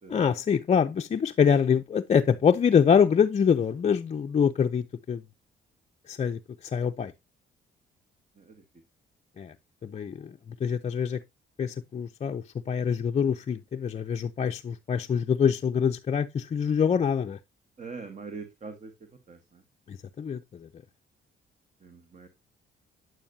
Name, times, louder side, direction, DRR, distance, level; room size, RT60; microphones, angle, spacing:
voice 1, 0.1-5.2 6.1-7.1 9.4-9.5 9.8-10.3 10.6-11.2 11.6-17.4 19.9-20.7, left 7 dB, 35° left, 0.5 m, -25 dB
voice 2, 17.8-18.9 19.3-19.6 21.8-22.3, right 4 dB, 35° right, 1.4 m, -42 dB
9.2 x 8.6 x 2.7 m
cardioid pair, 90°, 20 cm